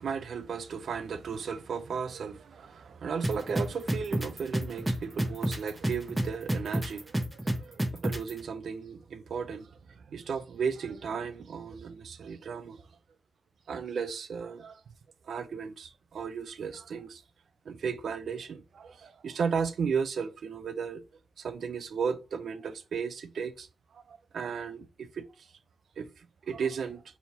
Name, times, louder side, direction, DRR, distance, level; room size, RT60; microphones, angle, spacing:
voice 1, 0.0-12.8 13.7-14.8 15.3-17.2 17.7-21.0 21.4-23.7 23.9-25.3 26.0-27.0, right 6 dB, 85° right, 0.5 m, -35 dB
sound 1, 3.2-8.3, right 1 dB, 15° right, 1.2 m, -28 dB
4.3 x 3.5 x 2.8 m
wide cardioid pair, 135°, 0 cm